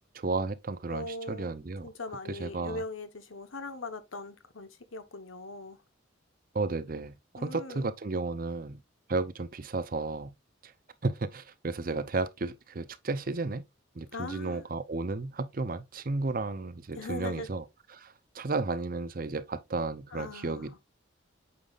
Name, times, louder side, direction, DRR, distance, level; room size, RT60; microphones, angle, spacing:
voice 1, 0.0-1.9 2.3-2.8 6.5-8.8 9.1-10.3 10.6-10.7 11.0-13.6 14.0-17.6 17.9-20.8, right 3 dB, 45° right, 0.6 m, -33 dB
voice 2, 0.9-5.8 7.4-7.9 14.1-14.6 16.9-17.5 20.1-20.8, left 2 dB, 85° left, 1.1 m, -40 dB
8.6 x 5.5 x 2.4 m
head